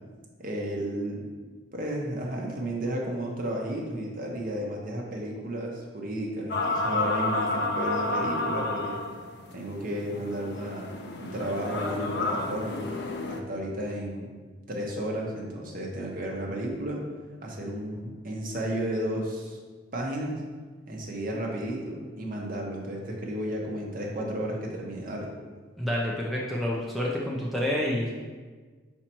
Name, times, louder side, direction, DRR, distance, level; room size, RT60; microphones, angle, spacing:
voice 1, 0.4-1.2 1.7-9.0 9.5-10.8 11.2-12.9 13.3-14.3 14.7-17.0 17.4-19.6 19.9-20.4 20.9-25.3, right 1 dB, 45° right, -1 dB, 1.0 m, -33 dB
sound 1, 6.5-13.4, left 2 dB, 55° left, 0.6 m, -31 dB
voice 2, 25.8-28.2, left 1 dB, ahead, -5 dB, 0.6 m, -28 dB
5.7 x 4.4 x 4.4 m, 1.4 s
head